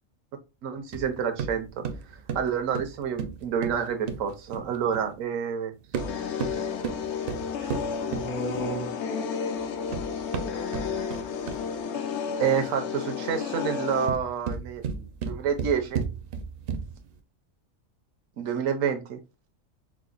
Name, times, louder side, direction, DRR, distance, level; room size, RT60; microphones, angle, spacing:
voice 1, 0.6-1.8 2.1-5.7 8.0-8.9 12.4-16.0 18.4-19.2, right 7 dB, 90° right, 6 dB, 1.1 m, -29 dB
sound 1, 0.9-5.1 5.8-8.9 9.6-11.8 13.9-17.1, right 6 dB, 60° right, 0.6 m, -34 dB
sound 2, 6.0-14.1, left 6 dB, 70° left, 0.8 m, -32 dB
4.8 x 2.1 x 2.4 m, 0.28 s
omnidirectional pair, 1.3 m